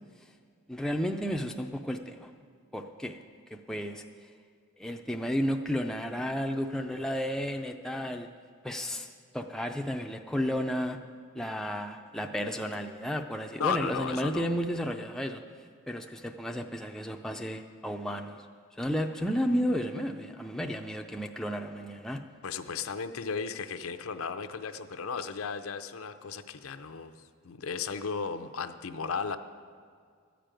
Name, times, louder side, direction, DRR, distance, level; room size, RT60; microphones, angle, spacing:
voice 1, 0.7-2.3 2.7-3.2 3.7-4.0 4.8-8.3 8.6-11.0 11.3-15.4 15.9-18.4 18.8-22.2, equal, 5° left, 3 dB, 0.4 m, -32 dB
voice 2, 13.6-14.6 22.4-29.4, left 5 dB, 85° left, 9 dB, 0.6 m, -35 dB
13.5 x 5.1 x 8.9 m, 2.1 s
head